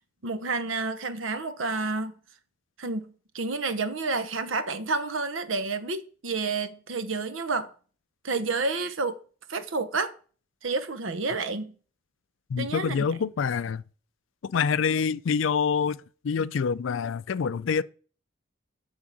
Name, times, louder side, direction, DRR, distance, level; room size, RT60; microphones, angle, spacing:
voice 1, 0.2-2.1 2.8-7.7 8.2-9.2 9.5-10.1 10.6-11.7 12.6-13.1, right 3 dB, 85° right, 0.9 m, -30 dB
voice 2, 12.5-13.8 14.4-16.0 16.2-17.8, left 6 dB, 80° left, 0.4 m, -26 dB
11.0 x 3.7 x 7.5 m
head